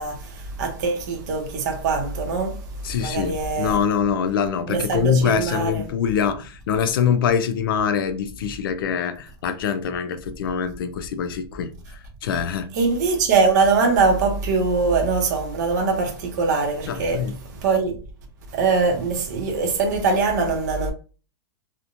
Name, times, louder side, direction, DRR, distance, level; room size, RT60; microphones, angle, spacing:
voice 1, 0.0-3.8 4.7-5.9 12.7-18.0 18.5-20.9, right 4 dB, 45° right, 0.6 m, -22 dB
voice 2, 2.8-11.7 12.2-12.7 16.9-17.4, left 7 dB, 60° left, 0.4 m, -24 dB
2.9 x 2.1 x 2.5 m
supercardioid pair, 175°, 13 cm